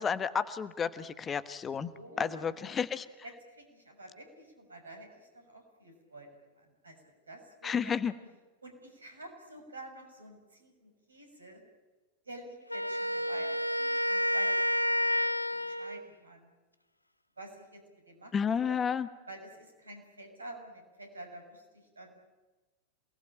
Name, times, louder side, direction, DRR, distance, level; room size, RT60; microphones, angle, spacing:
voice 1, 0.0-1.9 2.2-3.1 7.6-8.1 18.3-19.1, left 7 dB, 20° left, 13 dB, 1.2 m, -31 dB
voice 2, 1.9-2.7 3.2-6.3 6.6-7.9 8.6-11.6 12.2-16.5 17.4-18.3 18.6-18.8 19.3-22.2, right 1 dB, 75° right, 5 dB, 6.3 m, -49 dB
Wind instrument woodwind instrument, 12.7-16.1, equal, 85° left, 0.9 m, -30 dB
28.0 x 19.5 x 8.9 m, 1.2 s
figure-of-eight pair, 90°, 0 cm